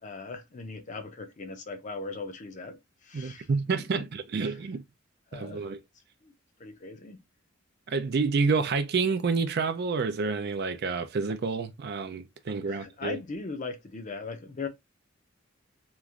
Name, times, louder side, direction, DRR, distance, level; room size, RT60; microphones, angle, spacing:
voice 1, 0.0-3.5 4.0-4.1 4.4-4.6 5.3-5.7 6.2-6.3 6.6-7.2 12.5-14.7, left 4 dB, 35° left, 0.5 m, -39 dB
voice 2, 3.1-4.8 5.3-5.8 7.9-13.2, right 4 dB, 50° right, 0.4 m, -29 dB
3.0 x 2.5 x 2.3 m
head